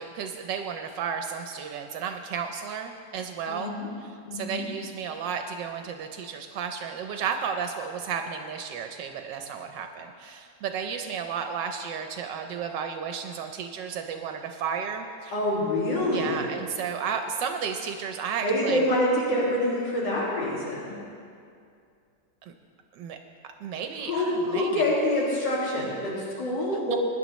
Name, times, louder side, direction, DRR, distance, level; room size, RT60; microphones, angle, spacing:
voice 1, 0.0-15.4 16.1-18.9 22.5-22.6 22.9-23.2 23.6-24.9 26.9-27.0, right 6 dB, 80° right, 5 dB, 1.3 m, -33 dB
voice 2, 3.5-3.9 4.3-4.7 15.3-16.5 18.4-21.0 24.1-27.0, left 1 dB, 75° left, -6 dB, 2.9 m, -26 dB
21.0 x 10.0 x 3.1 m, 2.4 s
omnidirectional pair, 1.9 m